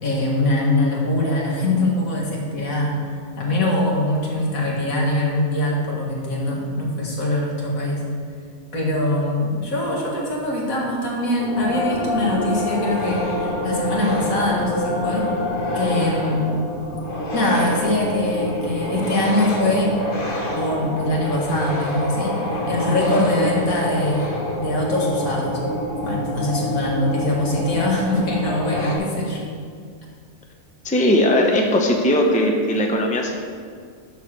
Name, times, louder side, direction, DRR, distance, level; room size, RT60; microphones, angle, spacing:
voice 1, 0.0-3.0 3.4-8.1 8.7-15.3 15.7-16.4 17.3-19.9 20.6-25.6 26.0-29.4, left 1 dB, 80° left, -3 dB, 2.3 m, -22 dB
sound 1, 11.3-29.0, left 1 dB, 40° left, 1.5 m, -26 dB
voice 2, 30.8-33.4, left 1 dB, 5° left, 1 dB, 0.7 m, -18 dB
11.5 x 4.2 x 6.6 m, 2.1 s
omnidirectional pair, 1.4 m